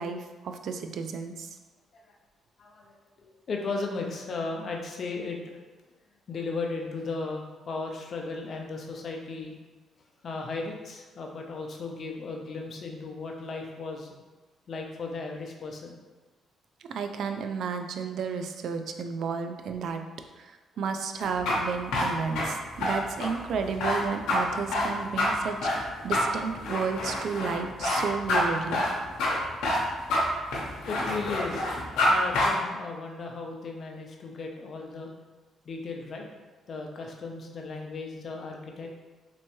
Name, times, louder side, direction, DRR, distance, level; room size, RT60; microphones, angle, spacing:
voice 1, 0.0-1.6 16.9-20.0 20.4-28.9, right 5 dB, 70° right, 6 dB, 0.3 m, -32 dB
voice 2, 2.6-5.6 6.3-9.6 10.2-14.1 14.7-16.0 30.9-31.7 32.1-35.1 35.6-36.3 36.7-38.9, left 3 dB, 50° left, 1 dB, 0.6 m, -36 dB
sound 1, 21.2-32.1 32.3-32.5, left 2 dB, 90° left, 0.8 m, -27 dB
3.2 x 3.0 x 3.0 m, 1.2 s
cardioid pair, 90°, 0 cm